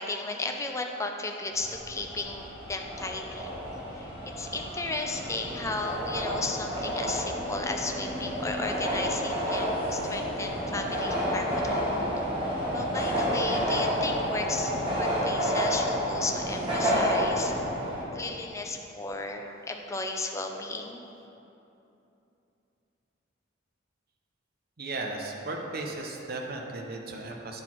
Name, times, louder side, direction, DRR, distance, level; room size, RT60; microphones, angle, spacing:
voice 1, 0.0-3.5 4.0-4.1 4.4-11.8 12.2-12.3 12.7-17.5 18.1-21.0, left 3 dB, 15° left, 3 dB, 0.5 m, -34 dB
sound 1, 1.5-18.0, equal, 30° right, 1.6 m, -30 dB
voice 2, 24.8-27.6, right 2 dB, 50° right, 1 dB, 0.7 m, -36 dB
9.4 x 4.0 x 4.4 m, 2.9 s
head